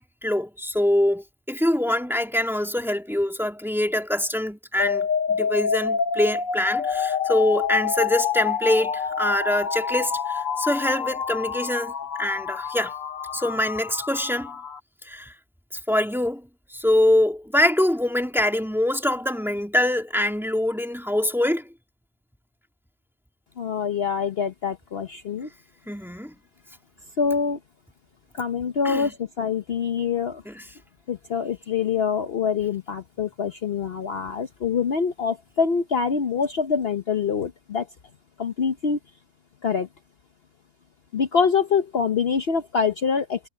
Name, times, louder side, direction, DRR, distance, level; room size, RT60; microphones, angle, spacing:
voice 1, 0.0-11.9 12.2-12.9 13.3-14.5 15.1-15.3 15.9-16.5 16.7-21.7 25.9-26.4 28.8-29.1 30.5-30.6, left 1 dB, ahead, 2.1 m, -24 dB
sound 1, 4.8-14.8, left 6 dB, 70° left, 1.5 m, -27 dB
voice 2, 23.6-25.5 27.2-27.6 28.3-30.4 31.1-37.9 38.4-39.0 39.6-39.9 41.1-43.4, left 6 dB, 50° left, 1.1 m, -25 dB
omnidirectional pair, 1.4 m